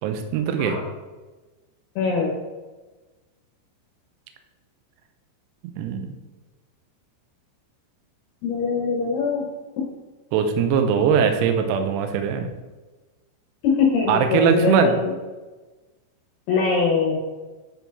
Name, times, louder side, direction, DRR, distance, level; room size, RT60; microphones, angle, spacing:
voice 1, 0.0-0.8 5.8-6.1 10.3-12.5 14.1-14.9, right 7 dB, 85° right, 6 dB, 2.4 m, -21 dB
voice 2, 2.0-2.3 8.4-9.5 13.6-15.1 16.5-17.2, left 4 dB, 70° left, -2 dB, 2.7 m, -22 dB
9.6 x 4.5 x 4.1 m, 1.2 s
omnidirectional pair, 5.7 m